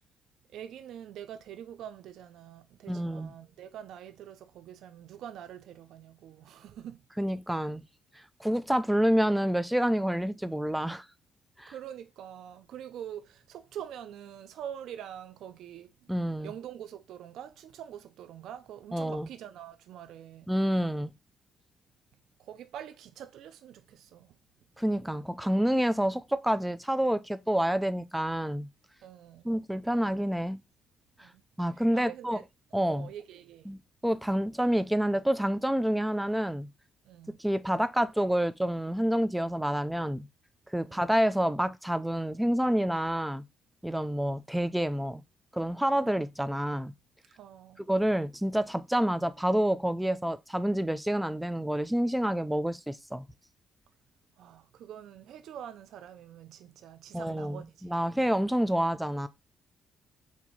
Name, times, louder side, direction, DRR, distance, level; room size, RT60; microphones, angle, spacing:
voice 1, 0.5-7.0 11.7-16.1 16.4-20.5 22.4-24.4 29.0-29.6 31.2-31.4 31.9-32.4 32.7-33.7 37.0-37.4 40.8-41.0 47.4-47.8 54.4-58.3, right 10 dB, 80° right, 0.5 m, -45 dB
voice 2, 2.9-3.3 7.2-7.8 8.4-11.0 11.6-11.7 16.1-16.5 18.9-19.3 20.5-21.1 24.8-28.7 29.4-30.6 31.6-32.4 32.7-33.1 33.7-36.7 37.4-40.3 40.7-43.4 43.8-45.2 45.5-46.9 47.9-53.3 57.1-59.3, equal, 5° right, 0.4 m, -28 dB
4.6 x 2.7 x 4.1 m
cardioid pair, 90°, 0 cm